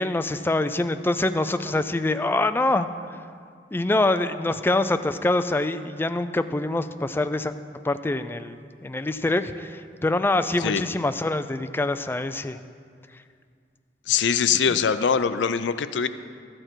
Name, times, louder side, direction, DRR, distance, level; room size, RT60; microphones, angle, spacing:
voice 1, 0.0-3.2 3.7-7.5 7.8-12.6, left 2 dB, 10° left, 10 dB, 0.3 m, -25 dB
voice 2, 14.1-16.1, left 7 dB, 85° left, 12 dB, 0.5 m, -22 dB
12.5 x 8.8 x 4.5 m, 2.2 s
head